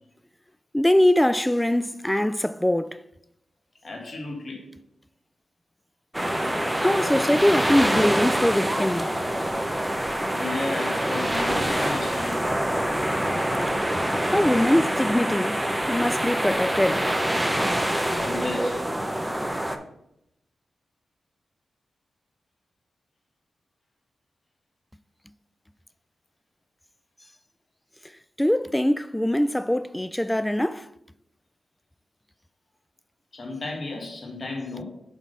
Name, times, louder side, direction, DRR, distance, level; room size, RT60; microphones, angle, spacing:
voice 1, 0.7-3.0 6.8-9.1 14.3-15.6 15.9-17.0 28.4-30.9, left 1 dB, 10° left, 0.3 m, -22 dB
voice 2, 3.8-4.6 10.2-12.4 18.1-18.8 33.3-34.8, left 2 dB, 55° left, 1.8 m, -33 dB
sound 1, 6.1-19.8, right 1 dB, 10° right, 0.8 m, -25 dB
6.1 x 3.8 x 5.4 m
cardioid pair, 50°, 0 cm